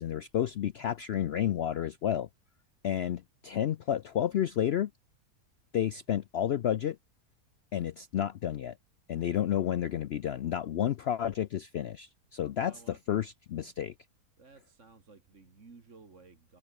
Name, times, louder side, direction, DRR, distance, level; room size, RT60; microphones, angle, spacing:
voice 1, 0.0-2.3 2.8-4.9 5.7-7.0 7.7-8.8 9.1-13.9, left 10 dB, 75° left, 0.5 m, -31 dB
voice 2, 12.6-13.0 14.4-16.6, right 4 dB, 50° right, 2.6 m, -56 dB
omnidirectional pair, 1.7 m